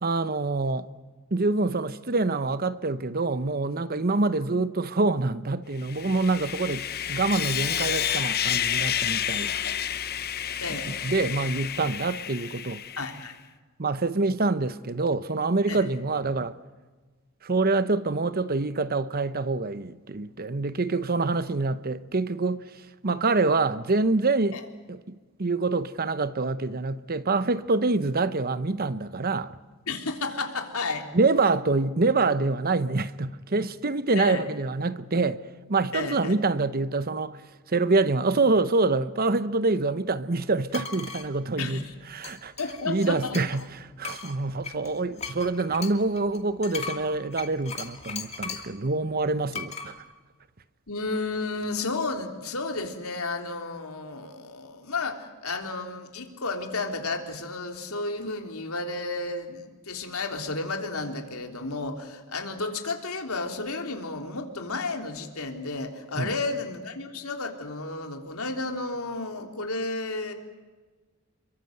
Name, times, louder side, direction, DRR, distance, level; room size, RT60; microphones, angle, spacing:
voice 1, 0.0-0.9 1.3-9.5 10.9-12.8 13.8-16.6 17.4-22.6 23.0-24.6 24.9-29.5 31.1-35.4 35.7-37.4 37.7-41.8 42.1-42.5 42.8-49.9 66.2-66.3, right 3 dB, 45° right, 0.9 m, -26 dB
Sawing, 5.8-13.2, left 10 dB, 45° left, 0.9 m, -30 dB
voice 2, 10.6-10.9 13.0-13.3 15.7-15.8 24.5-24.7 29.9-31.1 34.2-34.4 35.9-36.3 41.6-41.9 42.6-43.4 50.9-70.3, left 3 dB, 90° left, 3.4 m, -32 dB
sound 1, 40.7-41.3 42.2-43.7 44.0-48.7 49.5-49.9, left 5 dB, 30° left, 2.5 m, -38 dB
29.0 x 23.0 x 7.9 m
head